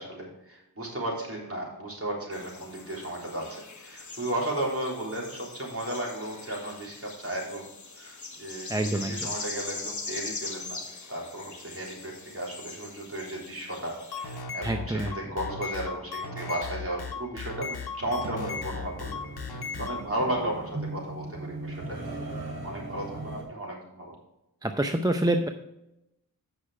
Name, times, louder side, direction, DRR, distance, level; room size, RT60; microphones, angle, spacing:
voice 1, 0.0-7.6 7.9-10.8 11.1-19.2 19.4-22.2 22.6-24.1, right 1 dB, 35° right, -3 dB, 3.6 m, -34 dB
sound 1, 2.3-14.4, left 3 dB, 50° left, 1.2 m, -41 dB
voice 2, 8.7-9.3 14.6-15.1 24.6-25.5, right 1 dB, 10° right, 6 dB, 0.6 m, -27 dB
sound 2, 14.0-20.0, left 5 dB, 85° left, 1.1 m, -36 dB
sound 3, 18.0-23.4, right 2 dB, 75° right, 3.0 m, -38 dB
8.6 x 6.1 x 4.9 m, 0.89 s
wide cardioid pair, 65°, 37 cm